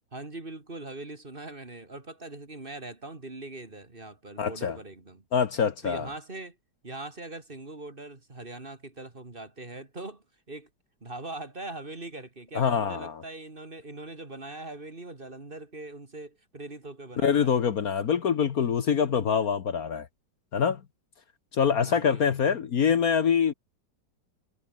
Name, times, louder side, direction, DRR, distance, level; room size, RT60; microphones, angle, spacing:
voice 1, 0.1-5.2 5.8-6.6 6.8-10.7 11.0-17.5 21.8-22.5, right 2 dB, 30° right, 2.8 m, -41 dB
voice 2, 4.4-4.8 5.3-6.1 12.5-13.2 17.2-20.1 20.5-20.8 21.5-23.5, left 7 dB, 55° left, 1.6 m, -25 dB
omnidirectional pair, 1.9 m